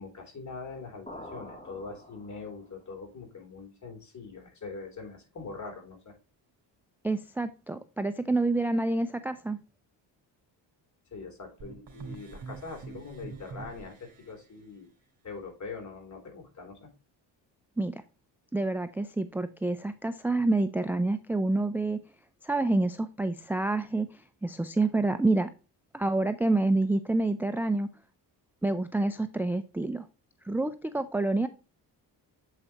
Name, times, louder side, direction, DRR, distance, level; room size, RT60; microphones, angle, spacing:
voice 1, 0.0-6.1 11.1-14.9 15.2-16.9, left 4 dB, 40° left, 2 dB, 3.4 m, -43 dB
sound 1, 1.1-2.8, left 1 dB, 15° left, 2.9 m, -46 dB
voice 2, 7.0-9.6 17.8-18.0 18.5-22.0 22.4-25.5 25.9-27.9 28.6-30.0 30.5-31.5, right 2 dB, 5° right, 10 dB, 0.4 m, -28 dB
sound 2, 11.6-14.3, right 4 dB, 50° right, 2.4 m, -44 dB
7.5 x 4.8 x 2.9 m, 0.34 s
cardioid pair, 75°, 45 cm